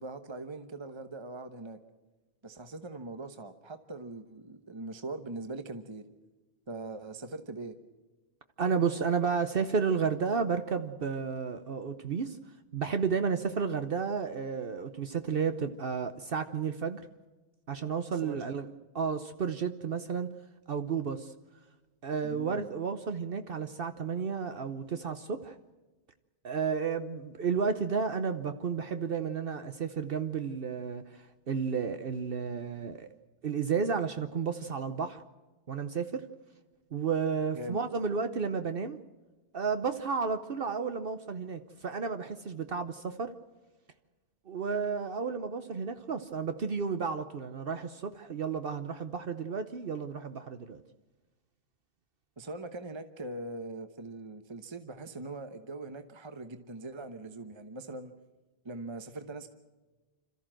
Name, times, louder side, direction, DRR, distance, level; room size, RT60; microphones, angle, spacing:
voice 1, 0.0-1.8 2.4-6.0 6.7-7.7 18.2-18.4 22.2-22.7 37.5-37.8 52.4-58.1 58.6-59.5, right 2 dB, 25° right, 8 dB, 1.0 m, -41 dB
voice 2, 8.6-12.4 12.7-17.0 17.7-18.7 18.9-20.3 20.7-21.3 22.0-25.5 26.4-33.1 33.4-35.2 35.7-36.3 36.9-39.0 39.5-43.3 44.5-50.8, right 6 dB, 60° right, 9 dB, 1.1 m, -32 dB
27.0 x 14.0 x 7.6 m, 1.2 s
omnidirectional pair, 1.1 m